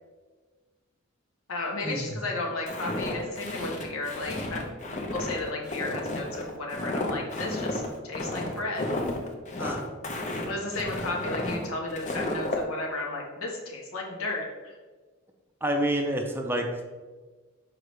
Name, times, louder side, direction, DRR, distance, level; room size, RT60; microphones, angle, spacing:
voice 1, 1.5-4.6 5.0-8.9 9.6-10.0 10.4-14.8, left 2 dB, 80° left, -2 dB, 1.3 m, -34 dB
Walk footsteps, 2.7-12.6, left 1 dB, 35° left, 0.7 m, -32 dB
voice 2, 15.6-16.9, right 1 dB, 10° right, 3 dB, 0.5 m, -28 dB
6.4 x 4.8 x 3.2 m, 1.3 s
head